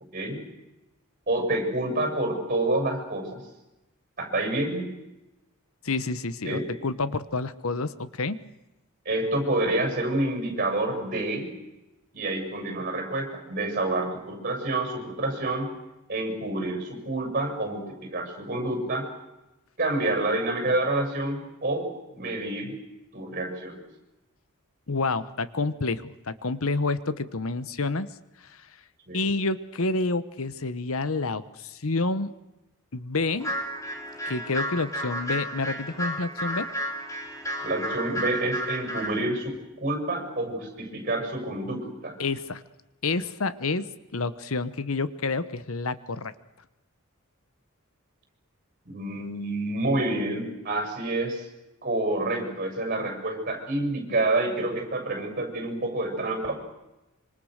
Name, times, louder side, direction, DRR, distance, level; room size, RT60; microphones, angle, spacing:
voice 1, 1.3-3.4 4.2-4.8 6.4-6.6 9.1-11.5 12.1-15.7 16.1-19.1 19.8-21.9 22.1-22.8 23.1-23.8 29.1-29.3 37.6-42.2 48.9-51.5 51.8-56.5, right 2 dB, 40° right, 4 dB, 7.1 m, -28 dB
voice 2, 5.8-8.4 24.9-28.1 28.4-28.6 29.1-32.3 32.9-33.5 34.3-36.7 42.2-42.6 43.0-43.9 44.1-46.3, left 3 dB, 70° left, 15 dB, 1.1 m, -28 dB
sound 1, 33.4-39.2, right 1 dB, 15° left, 3.4 m, -32 dB
26.0 x 25.0 x 6.6 m, 0.99 s
head